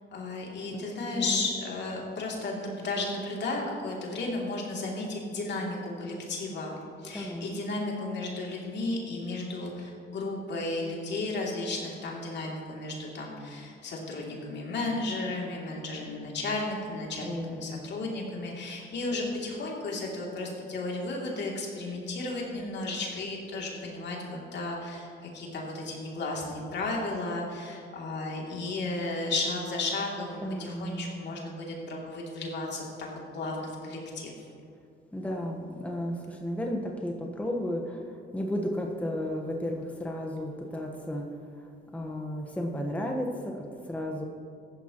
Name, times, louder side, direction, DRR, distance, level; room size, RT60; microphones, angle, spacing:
voice 1, 0.1-32.9 33.3-34.3, left 2 dB, 60° left, -2 dB, 2.8 m, -34 dB
voice 2, 1.1-1.4 7.1-7.4 17.2-17.8 30.4-31.1 35.1-41.3 41.6-43.3 43.5-44.2, equal, 5° left, 1 dB, 1.2 m, -33 dB
14.5 x 11.5 x 3.0 m, 2.4 s
cardioid pair, 90°, 20 cm